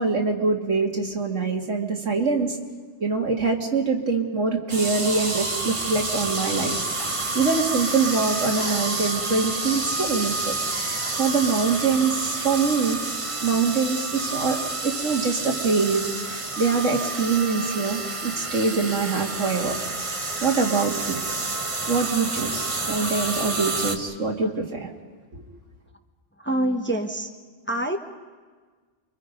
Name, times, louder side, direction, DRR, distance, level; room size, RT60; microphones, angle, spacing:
voice 1, 0.0-2.6 3.0-6.8 7.3-13.0 13.4-14.6 14.8-19.8 20.4-21.2 21.9-24.9 25.3-25.4, right 4 dB, 85° right, 1 dB, 2.5 m, -24 dB
sound 1, 4.7-24.0, right 3 dB, 30° right, 1.1 m, -29 dB
voice 2, 26.4-27.3 27.7-28.0, right 1 dB, 10° left, 4 dB, 1.0 m, -26 dB
29.0 x 23.5 x 5.3 m, 1.5 s
omnidirectional pair, 1.2 m